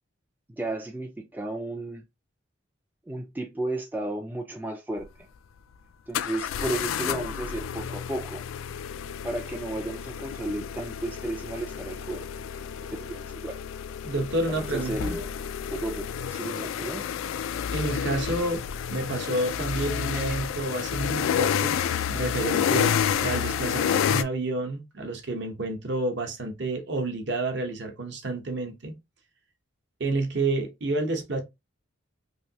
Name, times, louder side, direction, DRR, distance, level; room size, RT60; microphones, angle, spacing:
voice 1, 0.6-2.0 3.1-5.1 6.1-8.4 9.2-12.2 13.0-13.6 14.5-15.3 15.7-17.1, right 1 dB, 10° right, 0.3 m, -33 dB
sound 1, 5.0-5.1 6.1-24.2, left 8 dB, 85° left, 0.3 m, -30 dB
voice 2, 14.0-15.2 17.7-18.6 18.9-21.8 22.1-23.0 23.2-28.9 30.0-31.4, right 2 dB, 60° right, 0.8 m, -29 dB
3.2 x 2.6 x 2.7 m
head